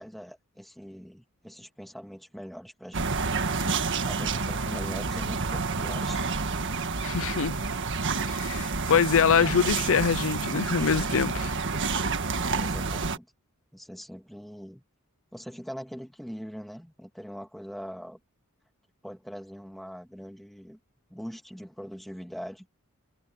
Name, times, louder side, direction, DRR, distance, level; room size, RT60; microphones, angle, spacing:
voice 1, 0.0-3.4 4.0-6.2 12.6-13.3 13.7-14.8 15.3-18.2 19.0-20.8 21.1-22.7, equal, ahead, 2.3 m, -42 dB
sound 1, 2.9-13.2, right 4 dB, 60° right, 1.7 m, -29 dB
voice 2, 7.0-7.5 8.3-11.5, left 6 dB, 65° left, 0.6 m, -24 dB
head